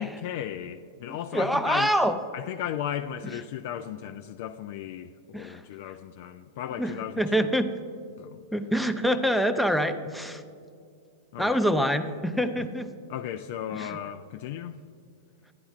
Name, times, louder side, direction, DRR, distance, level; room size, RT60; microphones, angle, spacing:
voice 1, 0.0-1.9 2.3-7.5 8.2-8.4 11.3-11.6 13.1-14.8, left 10 dB, 60° left, 0.3 m, -35 dB
voice 2, 1.3-2.2 5.3-5.6 6.8-7.7 8.5-10.4 11.4-12.9 13.8-14.0, equal, ahead, 0.5 m, -25 dB
11.5 x 10.0 x 2.4 m
hypercardioid pair, 120°, 0 cm